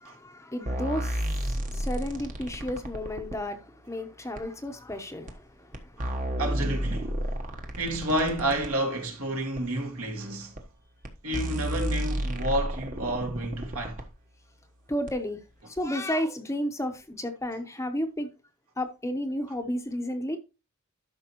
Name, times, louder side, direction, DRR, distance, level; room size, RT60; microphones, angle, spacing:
voice 1, 0.0-6.3 7.2-7.7 14.9-15.4 15.7-18.3 18.8-20.4, equal, 15° left, 0.8 m, -33 dB
sound 1, 0.7-3.4 4.4-4.5 5.3-5.4 5.7-8.7 9.6-9.7 10.6-10.7 11.0-11.1 11.3-14.1 15.1-15.2, equal, 35° right, 1.2 m, -31 dB
voice 2, 6.0-7.3 7.8-10.6 11.2-14.0, right 1 dB, 70° right, 2.2 m, -30 dB
12.0 x 5.8 x 3.0 m
head